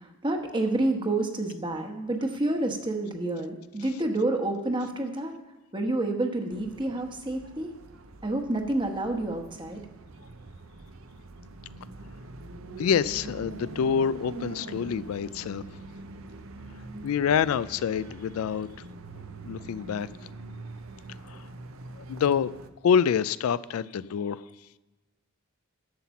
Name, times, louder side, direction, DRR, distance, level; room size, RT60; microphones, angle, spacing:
voice 1, 0.0-5.3 5.7-7.7 8.2-9.8, right 2 dB, 20° right, 4 dB, 1.1 m, -29 dB
sound 1, 6.5-22.7, right 2 dB, 75° right, 0.6 m, -44 dB
voice 2, 12.8-15.6 17.0-18.7 19.4-20.1 21.2-21.4 22.0-22.5 22.8-24.4, left 7 dB, 80° left, 17 dB, 0.3 m, -26 dB
11.5 x 5.9 x 7.0 m, 1.1 s
head